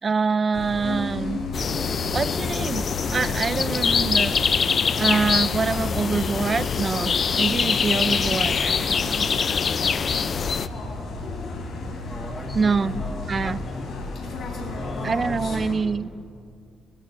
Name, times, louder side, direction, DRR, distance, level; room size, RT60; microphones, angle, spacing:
voice 1, 0.0-1.4 2.1-4.4 5.0-9.3 12.5-12.9 13.3-13.6 15.0-16.1, right 4 dB, 35° right, 16 dB, 0.4 m, -25 dB
sound 1, 0.5-15.8, left 2 dB, 65° left, 3.4 m, -33 dB
sound 2, 1.5-10.7, left 6 dB, 45° left, 0.4 m, -24 dB
voice 2, 12.0-13.9 14.6-16.0, left 1 dB, 15° left, 4 dB, 1.6 m, -38 dB
29.0 x 13.5 x 2.6 m, 2.2 s
cardioid pair, 90°, 0 cm